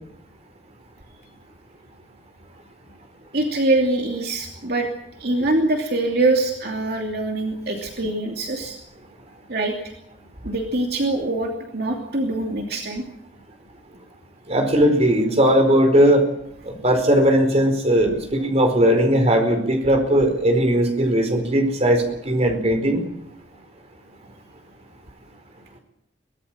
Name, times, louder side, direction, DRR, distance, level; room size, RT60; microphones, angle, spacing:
voice 1, 3.3-4.9 5.2-8.8 9.5-9.9 10.4-13.0, right 2 dB, 60° right, 1 dB, 2.8 m, -23 dB
voice 2, 14.5-16.3 16.6-23.0, equal, 35° right, 5 dB, 4.7 m, -18 dB
24.0 x 18.5 x 7.6 m, 0.78 s
head